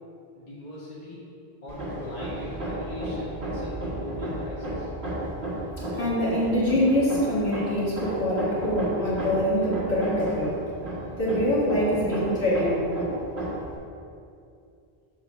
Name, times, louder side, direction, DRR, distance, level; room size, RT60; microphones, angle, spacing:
voice 1, 0.3-1.2 1.6-4.9, left 2 dB, 40° left, -7 dB, 1.3 m, -39 dB
Hammer, 1.7-13.8, right 1 dB, 80° right, 1.6 m, -33 dB
voice 2, 5.9-10.6 11.2-12.9, equal, 60° left, -8 dB, 2.2 m, -24 dB
7.2 x 4.0 x 6.2 m, 2.5 s
omnidirectional pair, 1.0 m